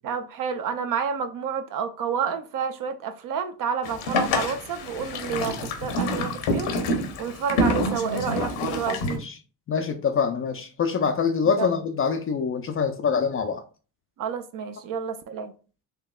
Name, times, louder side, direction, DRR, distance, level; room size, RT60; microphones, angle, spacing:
voice 1, 0.0-6.7 7.2-9.2 11.6-11.7 14.2-15.5, right 6 dB, 45° right, 0.6 m, -29 dB
Boat Water vehicle, 3.8-9.2, left 1 dB, 65° left, 0.9 m, -27 dB
voice 2, 9.1-9.4 9.7-13.6, left 6 dB, 30° left, 0.4 m, -25 dB
4.3 x 2.7 x 2.3 m
hypercardioid pair, 55°, 48 cm